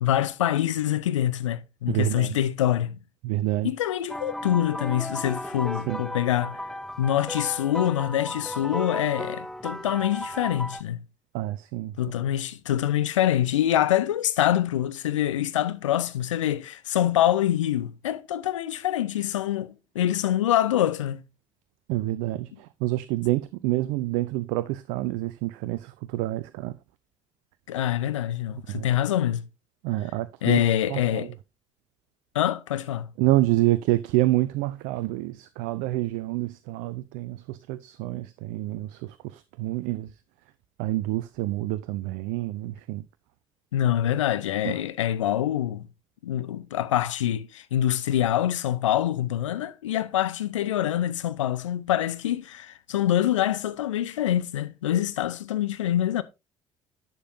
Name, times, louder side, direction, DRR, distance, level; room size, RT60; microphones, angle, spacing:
voice 1, 0.0-3.0 3.6-6.6 7.0-11.0 12.0-21.2 27.7-29.5 30.4-31.3 32.3-33.1 43.7-45.9 46.2-56.2, left 12 dB, 75° left, 0.7 m, -25 dB
voice 2, 1.9-2.4 3.2-3.7 5.9-6.0 11.3-12.0 21.9-26.8 28.7-28.9 29.8-31.3 33.2-40.2 40.8-43.1 44.6-44.9, right 17 dB, 60° right, 0.5 m, -28 dB
sound 1, 4.1-10.8, left 1 dB, 5° left, 0.8 m, -35 dB
11.0 x 7.0 x 2.7 m
figure-of-eight pair, 50°, 16 cm